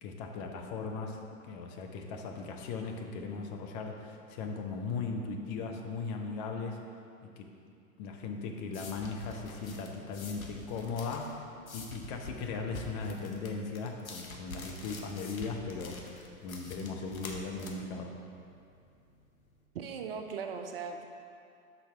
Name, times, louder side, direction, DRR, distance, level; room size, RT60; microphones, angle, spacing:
voice 1, 0.0-6.8 7.4-7.5 8.0-11.4 11.7-16.0 16.4-18.1, left 4 dB, 30° left, 2 dB, 0.6 m, -38 dB
sound 1, 8.2-19.6, left 2 dB, 75° left, 0.9 m, -47 dB
voice 2, 19.7-21.1, right 6 dB, 45° right, 5 dB, 0.5 m, -38 dB
6.2 x 4.0 x 5.6 m, 2.5 s
figure-of-eight pair, 100°, 41 cm